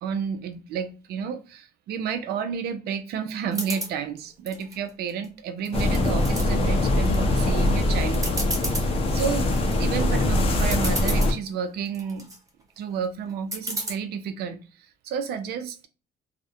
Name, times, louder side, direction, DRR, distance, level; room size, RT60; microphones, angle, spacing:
voice 1, 0.0-8.4 8.8-8.9 9.1-9.5 9.8-12.2 12.8-15.9, right 7 dB, 70° right, 0.5 m, -31 dB
sound 1, 3.5-3.9 4.5-5.2 5.6-6.4 7.0-7.4 7.7-7.8 8.1-8.9 9.4-9.7 10.3-10.4 10.6-11.3 11.9-12.4 13.5-13.9, right 1 dB, 20° right, 0.7 m, -32 dB
sound 2, 5.7-11.3, left 1 dB, 35° left, 0.5 m, -22 dB
2.4 x 2.1 x 2.6 m
cardioid pair, 110°, 17 cm